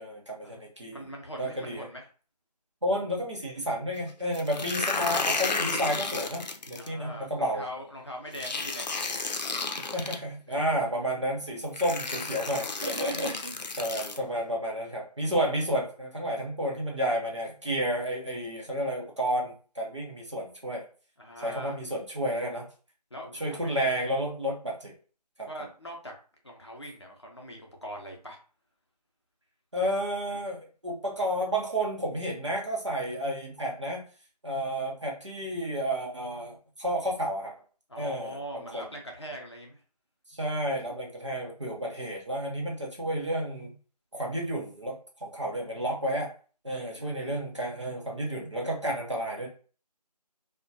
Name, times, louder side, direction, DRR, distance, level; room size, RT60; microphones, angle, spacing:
voice 1, 0.0-1.0 1.4-1.9 2.8-7.7 9.9-20.8 21.4-22.7 23.4-24.9 25.4-25.5 29.7-34.0 34.4-37.5 38.0-38.8 40.3-43.7 44.1-46.3 46.6-49.5, equal, 45° right, -1 dB, 0.7 m, -31 dB
voice 2, 0.9-2.0 6.8-9.2 10.5-10.6 13.6-13.7 21.2-21.8 23.1-24.0 25.5-26.1 26.4-28.4 37.9-39.8 46.7-47.4, equal, 40° left, 0 dB, 0.6 m, -42 dB
sound 1, 4.3-6.9 8.3-10.2 11.2-11.3 11.7-14.2, left 4 dB, 85° left, 0.5 m, -32 dB
2.3 x 2.1 x 2.6 m, 0.38 s
figure-of-eight pair, 180°, 21 cm